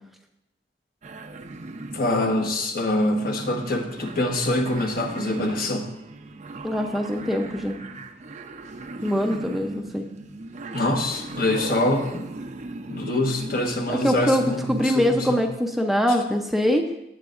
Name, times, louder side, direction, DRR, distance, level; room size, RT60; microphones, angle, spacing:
sound 1, 1.0-15.1, right 2 dB, 40° right, 0.6 m, -37 dB
voice 1, 1.9-5.9 10.7-12.3 12.9-15.4, left 1 dB, 55° left, 3 dB, 1.2 m, -25 dB
voice 2, 6.6-7.8 9.0-10.1 14.0-16.9, equal, ahead, 3 dB, 0.6 m, -23 dB
17.5 x 7.9 x 2.5 m, 0.87 s
head